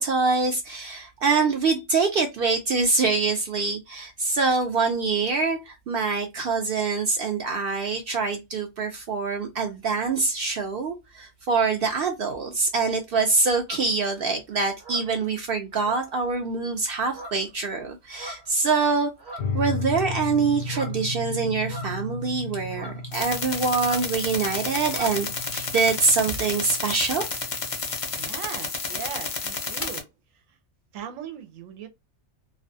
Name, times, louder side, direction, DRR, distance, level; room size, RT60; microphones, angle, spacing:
voice 1, 0.0-19.1 19.5-25.3 25.5-27.2, right 4 dB, 60° right, 0.6 m, -25 dB
sound 1, 13.7-13.9 14.8-15.2 15.8-16.4 17.1-17.5 18.1-18.6 19.2-19.6 20.7-21.0 21.6-22.2 22.7-23.0 23.8-24.1 24.4-24.6 24.8-25.2, equal, 40° right, 1.1 m, -41 dB
sound 2, 19.4-28.4, left 2 dB, 80° left, 1.0 m, -35 dB
sound 3, 23.1-30.0, left 4 dB, 45° left, 0.4 m, -31 dB
voice 2, 28.2-30.1 30.9-31.9, right 9 dB, 85° right, 1.0 m, -38 dB
2.4 x 2.2 x 2.6 m
omnidirectional pair, 1.3 m